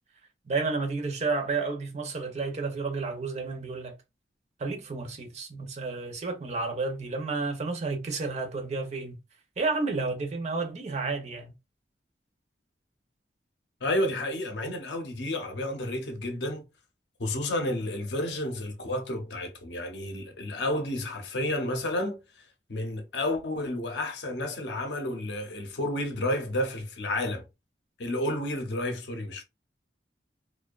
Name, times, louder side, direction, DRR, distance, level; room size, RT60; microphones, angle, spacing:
voice 1, 0.5-3.9 4.6-9.2 9.6-11.5, right 3 dB, 40° right, 0.5 m, -31 dB
voice 2, 13.8-16.7 17.2-22.2 22.7-27.5 28.0-29.4, left 1 dB, 70° left, 0.6 m, -31 dB
2.5 x 2.1 x 2.3 m
head